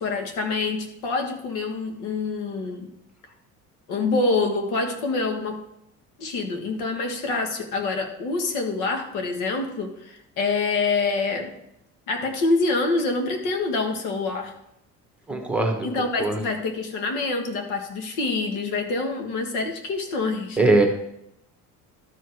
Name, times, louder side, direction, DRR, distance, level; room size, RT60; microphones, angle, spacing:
voice 1, 0.0-2.9 3.9-5.6 6.2-11.5 12.1-14.5 15.8-20.6, left 3 dB, 85° left, 4 dB, 1.5 m, -26 dB
voice 2, 15.3-15.9 16.2-16.4 20.6-20.9, right 2 dB, 5° right, 3 dB, 1.1 m, -20 dB
12.0 x 4.9 x 4.7 m, 0.81 s
cardioid pair, 140°, 31 cm